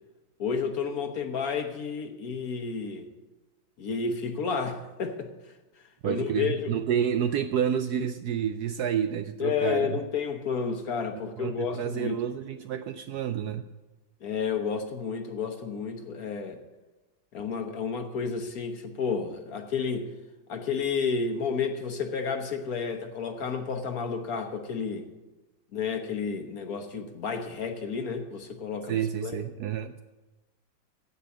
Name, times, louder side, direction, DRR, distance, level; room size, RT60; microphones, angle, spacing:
voice 1, 0.4-3.1 3.8-5.3 6.0-6.7 9.4-12.2 14.2-16.6 17.3-20.1 20.5-25.1 25.7-29.0 29.2-29.4, left 5 dB, 55° left, 1.3 m, -31 dB
voice 2, 6.0-10.0 11.1-13.7 28.9-30.0, right 9 dB, 75° right, 0.9 m, -29 dB
15.5 x 5.3 x 8.2 m
omnidirectional pair, 2.0 m